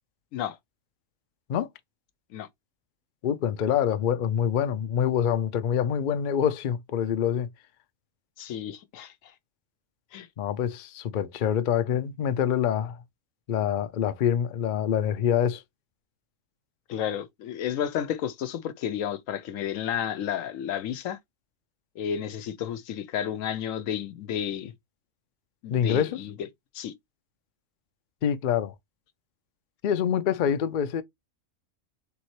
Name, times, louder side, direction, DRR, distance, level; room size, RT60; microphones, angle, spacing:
voice 1, 3.2-7.5 10.4-13.0 13.5-15.6 25.7-26.2 28.2-28.7 29.8-31.0, left 9 dB, 60° left, 0.5 m, -25 dB
voice 2, 8.4-9.1 10.1-10.3 16.9-21.2 22.0-24.7 25.6-26.3 26.7-26.9, left 9 dB, 85° left, 1.1 m, -31 dB
4.1 x 3.6 x 3.0 m
omnidirectional pair, 1.4 m